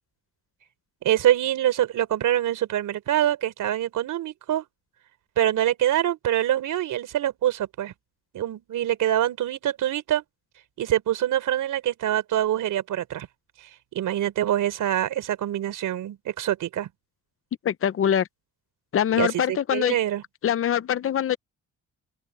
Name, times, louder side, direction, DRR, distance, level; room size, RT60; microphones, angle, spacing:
voice 1, 1.0-4.6 5.4-7.9 8.3-10.2 10.8-13.3 13.9-16.9 19.1-20.2, right 12 dB, 80° right, 4.1 m, -25 dB
voice 2, 17.6-18.3 18.9-20.0 20.4-21.4, left 9 dB, 45° left, 0.7 m, -23 dB
open air
cardioid pair, 130°, 31 cm